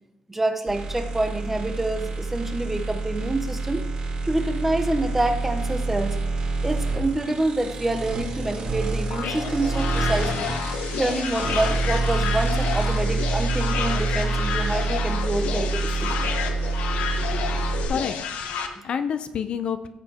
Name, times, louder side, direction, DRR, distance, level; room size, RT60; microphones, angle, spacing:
voice 1, 0.3-3.8 4.2-6.2 6.6-10.6 11.0-16.3, right 2 dB, 10° right, 6 dB, 0.9 m, -27 dB
sound 1, 0.7-17.9, right 3 dB, 45° right, 3.9 m, -27 dB
sound 2, 9.1-18.7, left 7 dB, 90° left, 1.0 m, -30 dB
voice 2, 16.9-18.2 18.4-19.9, left 7 dB, 45° left, 10 dB, 0.5 m, -30 dB
15.5 x 6.8 x 2.9 m, 0.96 s
cardioid pair, 150°, 2 cm